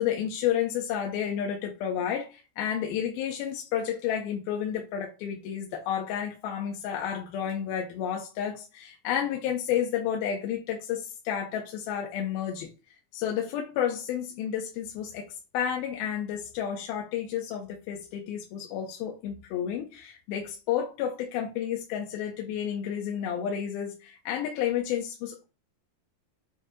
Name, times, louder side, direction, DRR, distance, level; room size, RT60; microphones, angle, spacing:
voice 1, 0.0-25.4, left 9 dB, 90° left, 2.7 m, -31 dB
7.7 x 2.8 x 4.9 m
omnidirectional pair, 4.3 m